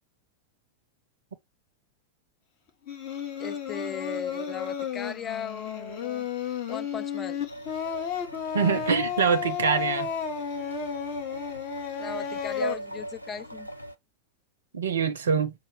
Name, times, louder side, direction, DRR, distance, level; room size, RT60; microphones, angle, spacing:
Singing, 2.9-12.8, left 8 dB, 45° left, 1.1 m, -33 dB
voice 1, 3.4-6.3 6.7-7.4 12.0-13.7, left 6 dB, 20° left, 0.4 m, -37 dB
sound 1, 7.5-13.9, right 1 dB, 90° left, 0.5 m, -39 dB
voice 2, 8.5-10.1 14.7-15.5, right 6 dB, 65° right, 0.5 m, -24 dB
5.3 x 2.1 x 3.3 m
figure-of-eight pair, 90°, 0 cm